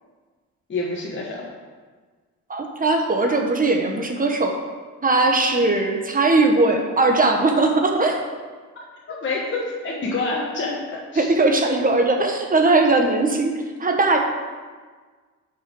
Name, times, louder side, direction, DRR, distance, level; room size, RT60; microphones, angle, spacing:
voice 1, 0.7-1.4 9.1-10.8 11.1-11.3, left 3 dB, 40° left, -5 dB, 1.4 m, -27 dB
voice 2, 2.5-4.5 5.0-8.2 11.2-13.5 13.8-14.2, right 2 dB, 30° right, 3 dB, 1.1 m, -19 dB
5.8 x 5.5 x 5.3 m, 1.5 s
cardioid pair, 90°, 30 cm